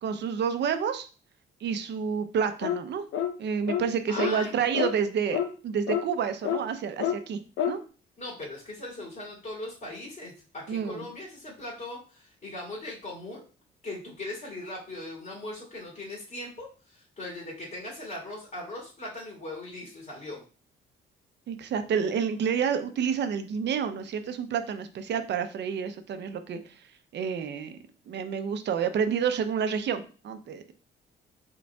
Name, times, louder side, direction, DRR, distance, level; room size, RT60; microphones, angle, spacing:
voice 1, 0.0-1.1 1.6-3.0 3.4-7.4 7.7-7.8 10.7-11.0 21.5-26.6 27.1-27.8 28.1-30.6, right 7 dB, 60° right, 9 dB, 0.6 m, -29 dB
sound 1, 2.6-2.8 3.1-3.3 3.7-3.9 4.2-4.3 4.7-4.9 5.3-5.5 5.9-6.0 6.4-6.6 7.0-7.2 7.6-7.8, left 9 dB, 80° left, 0.6 m, -28 dB
voice 2, 4.1-4.7 8.2-13.4 13.8-20.4, left 2 dB, 40° left, -4 dB, 2.2 m, -39 dB
5.2 x 3.9 x 2.3 m, 0.37 s
cardioid pair, 90°, 20 cm